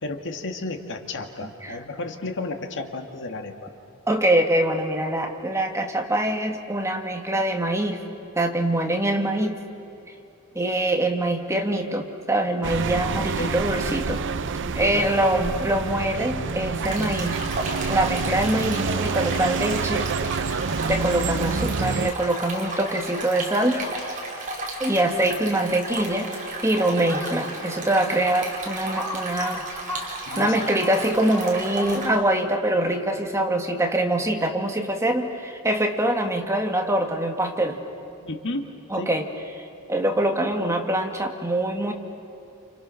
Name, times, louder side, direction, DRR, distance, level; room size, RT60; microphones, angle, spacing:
voice 1, 0.0-3.7 13.4-13.6 14.9-15.1 30.3-30.7 38.2-38.7 38.9-39.1, left 2 dB, 55° left, 5 dB, 2.0 m, -32 dB
voice 2, 1.4-1.8 4.1-8.0 8.4-9.6 10.5-14.2 14.7-17.4 17.9-20.1 20.9-23.8 24.8-26.3 26.6-29.6 30.4-37.8 38.9-39.3 39.9-41.9, right 1 dB, 15° right, 3 dB, 1.9 m, -24 dB
sound 1, 12.6-22.1, right 5 dB, 55° right, 0.7 m, -27 dB
Stream, 16.8-32.1, right 2 dB, 35° right, 5.3 m, -34 dB
Crow, 27.0-27.5 28.0-28.1 28.9-32.3, left 1 dB, 15° left, 3.2 m, -36 dB
29.5 x 29.0 x 6.4 m, 2.7 s
head